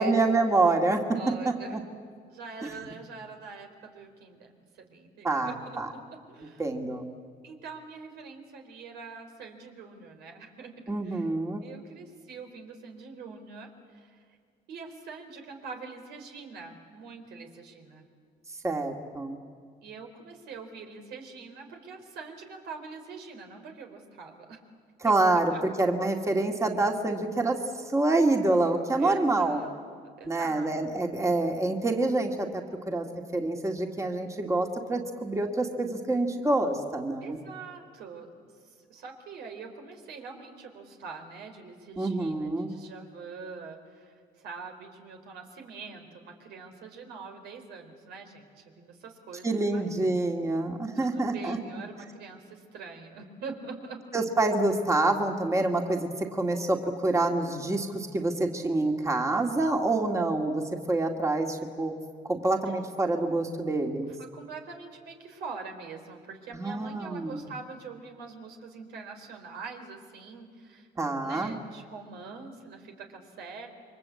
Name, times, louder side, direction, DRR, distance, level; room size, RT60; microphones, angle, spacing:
voice 1, 0.0-1.0 1.7-1.8 5.2-5.9 6.6-7.0 10.9-11.6 18.6-19.4 25.0-25.5 25.8-29.6 30.2-33.1 33.3-37.4 42.0-42.7 49.4-51.6 54.1-60.6 60.9-61.9 62.2-64.1 66.5-67.4 71.0-71.5, right 2 dB, 20° right, 3 dB, 2.2 m, -27 dB
voice 2, 1.1-1.8 2.3-6.6 7.4-10.7 11.0-11.3 11.6-14.4 14.7-18.0 19.8-24.6 25.0-25.6 29.0-30.7 37.2-38.3 38.6-49.9 50.9-54.0 62.7-62.8 64.2-73.7, right 4 dB, 75° right, 3 dB, 4.2 m, -44 dB
28.5 x 24.0 x 8.4 m, 2.1 s
cardioid pair, 110°, 17 cm